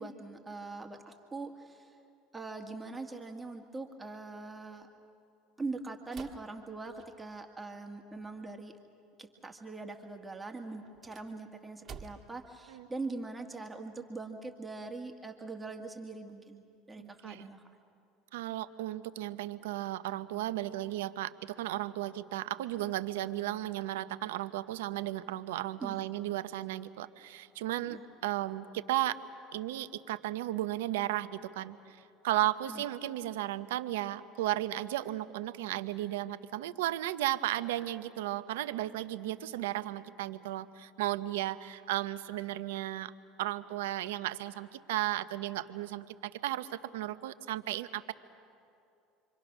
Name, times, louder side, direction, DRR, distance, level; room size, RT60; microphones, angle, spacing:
voice 1, 0.0-2.0 2.3-4.9 5.6-8.8 9.2-17.6 25.8-26.1 27.8-28.0 32.7-32.8, right 3 dB, 15° right, 2 dB, 2.1 m, -42 dB
sound 1, 6.1-7.5 10.8-12.5, right 5 dB, 40° right, 1.9 m, -50 dB
voice 2, 17.0-17.5 18.3-29.1 29.5-31.8 32.2-43.1 43.4-48.1, right 14 dB, 85° right, 12 dB, 0.8 m, -34 dB
28.0 x 24.5 x 6.2 m, 2.6 s
hypercardioid pair, 85°, 0 cm